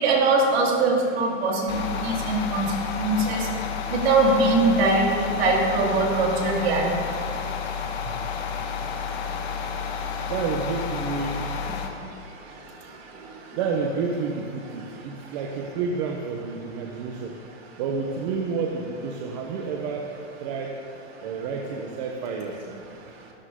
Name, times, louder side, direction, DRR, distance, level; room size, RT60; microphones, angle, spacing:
voice 1, 0.0-3.5 3.9-6.9, right 3 dB, 60° right, -2 dB, 4.1 m, -22 dB
sound 1, 1.7-11.9, left 6 dB, 60° left, 1.9 m, -31 dB
voice 2, 10.3-11.4 13.5-17.4 17.8-20.1 20.4-20.7 21.2-22.9, right 5 dB, 35° right, 1 dB, 1.1 m, -30 dB
22.5 x 13.5 x 3.8 m, 2.4 s
supercardioid pair, 165°, 35 cm